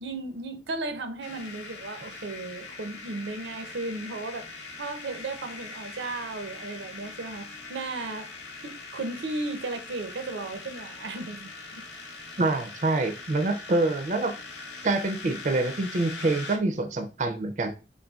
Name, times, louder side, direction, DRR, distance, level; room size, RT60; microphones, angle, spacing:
voice 1, 0.0-4.4 4.8-8.3 8.6-11.5, right 2 dB, 85° right, 0.6 m, -35 dB
sound 1, 1.2-16.6, left 3 dB, 70° left, 0.7 m, -42 dB
voice 2, 12.4-14.3 14.8-17.7, right 2 dB, 40° right, 0.4 m, -26 dB
3.9 x 3.6 x 2.3 m
head